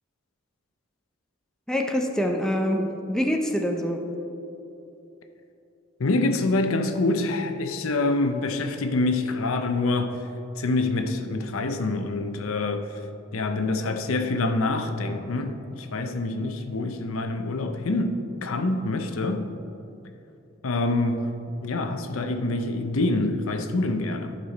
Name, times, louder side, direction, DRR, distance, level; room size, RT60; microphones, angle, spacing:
voice 1, 1.7-4.1, equal, 5° left, 3 dB, 0.5 m, -25 dB
voice 2, 6.0-10.2 10.6-13.0 13.3-19.5 20.6-21.3 21.6-24.4, left 2 dB, 85° left, 7 dB, 0.6 m, -26 dB
11.5 x 5.5 x 4.1 m, 2.9 s
head